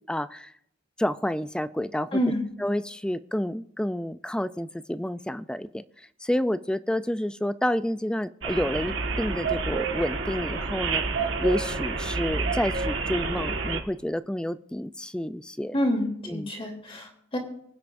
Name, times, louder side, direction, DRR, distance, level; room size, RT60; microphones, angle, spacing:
voice 1, 0.1-0.5 1.0-2.2 2.6-5.8 6.2-11.0 11.4-15.8 16.3-16.5, equal, 5° left, 13 dB, 0.4 m, -29 dB
voice 2, 2.1-2.4 15.7-17.4, equal, 30° left, 1 dB, 3.3 m, -27 dB
sound 1, 8.4-13.8, right 4 dB, 75° right, 1.6 m, -29 dB
24.5 x 9.5 x 2.6 m, 0.73 s
head